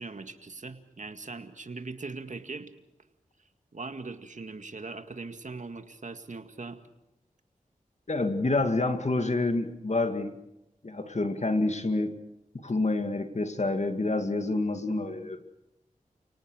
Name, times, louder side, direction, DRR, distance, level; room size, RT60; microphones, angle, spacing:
voice 1, 0.0-2.7 3.4-6.8, right 3 dB, 60° right, 8 dB, 2.1 m, -40 dB
voice 2, 8.1-10.3 10.8-12.1 12.6-15.4, left 2 dB, 50° left, 7 dB, 2.4 m, -28 dB
30.0 x 18.5 x 6.5 m, 0.90 s
cardioid pair, 45°, 15 cm